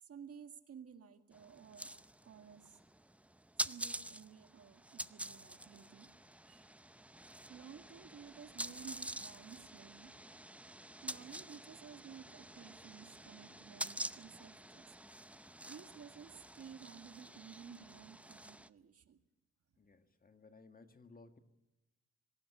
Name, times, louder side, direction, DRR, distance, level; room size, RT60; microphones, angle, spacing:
voice 1, 0.0-2.8 3.7-6.1 6.5-6.7 7.5-10.1 11.0-14.9 15.7-19.2, right 7 dB, 50° right, 8 dB, 1.9 m, -54 dB
sound 1, 1.3-18.7, right 1 dB, 5° right, 0.7 m, -47 dB
voice 2, 19.8-21.4, left 3 dB, 30° left, 8 dB, 2.1 m, -59 dB
26.0 x 18.5 x 6.2 m, 0.98 s
cardioid pair, 90°, 30 cm